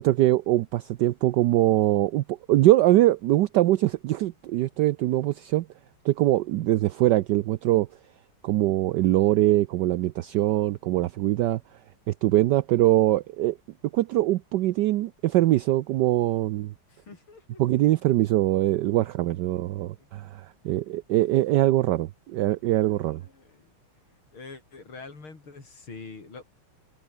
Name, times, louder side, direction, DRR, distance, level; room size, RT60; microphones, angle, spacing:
voice 1, 0.0-5.7 6.0-7.9 8.4-11.6 12.1-13.6 13.9-16.7 17.6-23.2, right 15 dB, 75° right, 1.0 m, -22 dB
voice 2, 16.9-17.6 19.0-20.3 21.1-21.2 22.8-26.4, left 4 dB, 70° left, 5.7 m, -47 dB
open air
omnidirectional pair, 2.4 m